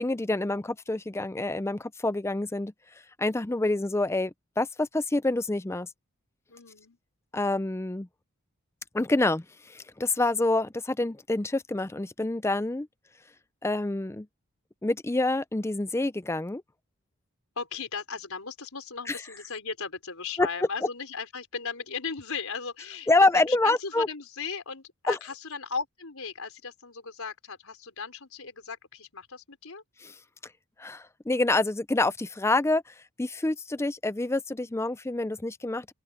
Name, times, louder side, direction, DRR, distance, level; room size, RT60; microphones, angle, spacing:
voice 1, 0.0-2.7 3.2-5.9 7.3-8.1 8.9-12.9 13.6-14.3 14.8-16.6 19.1-19.2 20.4-20.5 23.1-24.1 25.1-25.2 30.0-30.1 30.8-32.8 33.2-35.9, left 2 dB, 10° left, 0.4 m, -27 dB
voice 2, 6.5-7.0 17.6-29.8, left 5 dB, 75° left, 4.4 m, -37 dB
open air
head